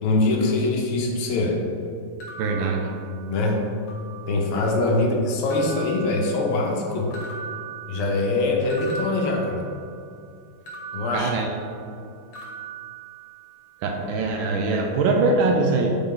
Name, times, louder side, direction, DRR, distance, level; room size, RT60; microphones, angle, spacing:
voice 1, 0.0-1.6 3.3-3.6 4.3-7.1 7.9-9.6 10.9-11.3, left 2 dB, 85° left, 1 dB, 1.8 m, -23 dB
sound 1, 2.2-3.5 3.9-4.6 5.5-6.8 7.1-10.1 10.7-12.0 12.3-13.7, right 6 dB, 65° left, 1.6 m, -39 dB
voice 2, 2.4-2.9 5.0-5.1 11.1-11.6 13.8-15.9, right 3 dB, 75° right, 2 dB, 1.3 m, -22 dB
6.8 x 4.0 x 3.8 m, 2.4 s
omnidirectional pair, 2.4 m